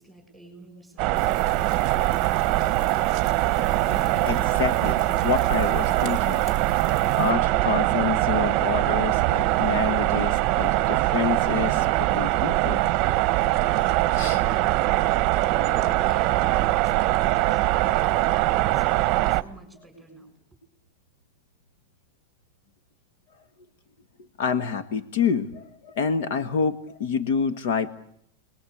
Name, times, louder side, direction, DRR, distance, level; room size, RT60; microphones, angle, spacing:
voice 1, 0.0-1.7 15.4-20.6 24.8-24.9, right 2 dB, ahead, 6 dB, 7.2 m, -47 dB
sound 1, 1.0-19.4, right 17 dB, 35° right, 1.0 m, -22 dB
sound 2, 1.1-7.3, left 2 dB, 30° left, 2.7 m, -43 dB
voice 2, 4.2-6.4 7.2-12.8 14.1-14.4 24.4-27.9, left 6 dB, 60° left, 10 dB, 1.5 m, -28 dB
29.5 x 21.0 x 8.6 m, 0.72 s
supercardioid pair, 160°, 0 cm